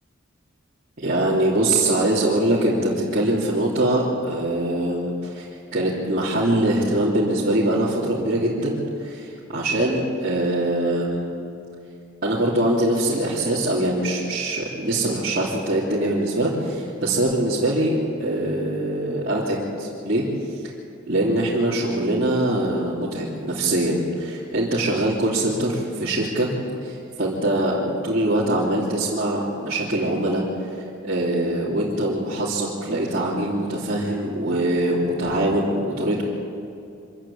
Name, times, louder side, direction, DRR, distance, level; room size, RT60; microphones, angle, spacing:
voice 1, 1.0-5.4 5.7-11.3 12.2-20.2 21.1-26.5 26.8-30.4 31.0-36.2, right 1 dB, 45° right, -8 dB, 3.3 m, -23 dB
25.5 x 15.0 x 8.7 m, 2.6 s
head